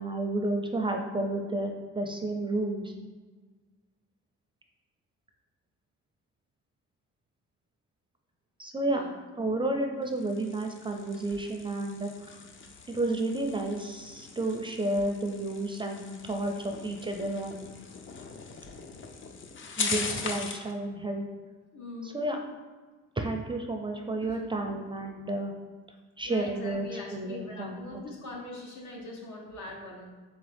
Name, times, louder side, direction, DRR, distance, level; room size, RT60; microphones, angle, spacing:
voice 1, 0.0-2.9 8.6-9.0 9.4-12.4 12.9-17.7 19.8-21.2 22.0-22.4 23.2-25.5 26.2-28.0, right 2 dB, 15° right, 3 dB, 0.4 m, -31 dB
voice 2, 8.9-9.2 21.7-22.1 24.2-24.4 26.2-30.1, left 2 dB, 70° left, -1 dB, 1.1 m, -42 dB
sound 1, 10.0-20.7, left 5 dB, 40° left, 0.5 m, -40 dB
3.6 x 3.5 x 3.4 m, 1.4 s
cardioid pair, 90°, 30 cm